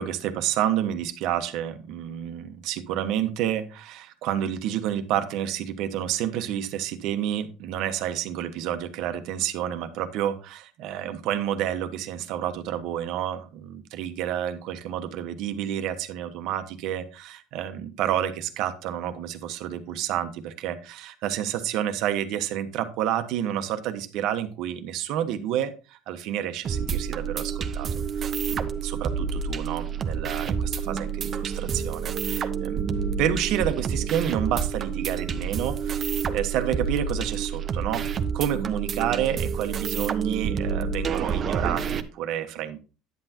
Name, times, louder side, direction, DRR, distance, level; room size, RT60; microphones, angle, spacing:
voice 1, 0.0-27.9 28.2-38.1 38.3-42.8, right 10 dB, 65° right, 8 dB, 1.2 m, -29 dB
sound 1, 26.6-42.0, right 6 dB, 35° right, 0.9 m, -28 dB
10.5 x 8.0 x 2.9 m, 0.33 s
supercardioid pair, 120°, 0 cm